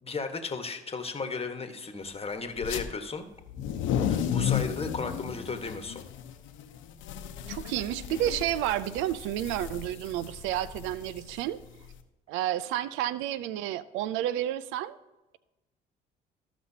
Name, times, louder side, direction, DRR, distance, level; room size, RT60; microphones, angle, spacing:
voice 1, 0.0-3.3 4.1-6.1, left 4 dB, 30° left, 6 dB, 1.4 m, -35 dB
sound 1, 2.6-2.8 3.4-11.9, left 9 dB, 75° left, 0.9 m, -33 dB
voice 2, 7.5-11.6 12.3-15.0, right 12 dB, 75° right, 17 dB, 0.4 m, -30 dB
14.0 x 6.0 x 2.8 m, 1.0 s
hypercardioid pair, 60°, 20 cm